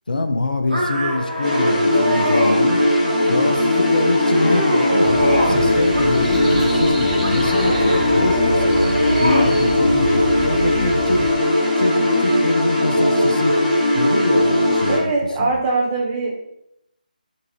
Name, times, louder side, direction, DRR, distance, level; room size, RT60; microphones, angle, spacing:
voice 1, 0.1-2.8 3.3-8.8 9.2-11.2 11.8-13.6 13.9-15.1 15.4-15.6, left 2 dB, 70° left, 6 dB, 0.4 m, -25 dB
sound 1, 0.7-2.6 3.1-3.6 4.0-5.6 5.9-6.6 7.2-9.5, equal, 80° right, 1.0 m, -25 dB
sound 2, 1.4-15.0, left 1 dB, 5° left, 1.3 m, -18 dB
sound 3, 5.0-11.3, right 1 dB, 35° right, 0.9 m, -28 dB
voice 2, 14.9-16.3, right 3 dB, 20° right, -3 dB, 0.6 m, -21 dB
3.6 x 2.8 x 2.9 m, 0.79 s
figure-of-eight pair, 155°, 5 cm